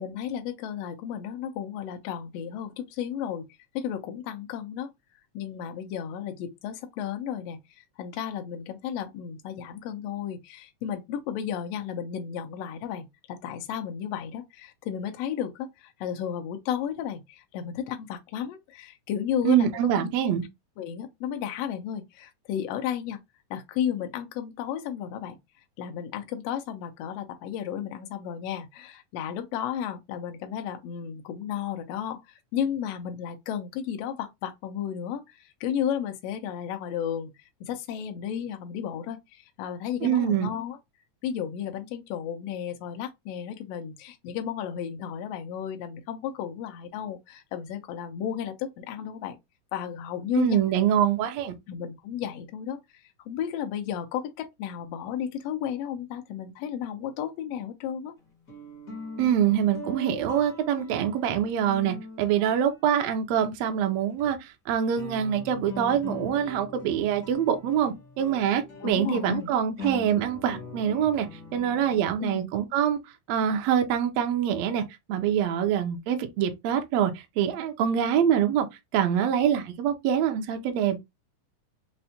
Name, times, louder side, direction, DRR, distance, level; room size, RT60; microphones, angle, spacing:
voice 1, 0.0-3.4 3.7-4.9 5.3-19.7 19.9-20.1 20.8-23.2 23.5-25.4 25.8-37.3 37.6-40.8 41.2-49.4 49.7-50.6 51.7-52.8 53.3-58.1 68.8-69.5 72.2-72.5, left 9 dB, 85° left, 1.4 m, -33 dB
voice 2, 19.4-20.4 40.0-40.5 50.3-51.5 59.2-71.3 71.5-73.0 73.3-74.8 75.1-78.7 78.9-81.0, right 9 dB, 80° right, 1.6 m, -25 dB
sound 1, 58.2-63.4 64.1-64.2 64.9-72.0, left 1 dB, 65° left, 0.8 m, -42 dB
5.2 x 2.1 x 2.7 m
omnidirectional pair, 3.6 m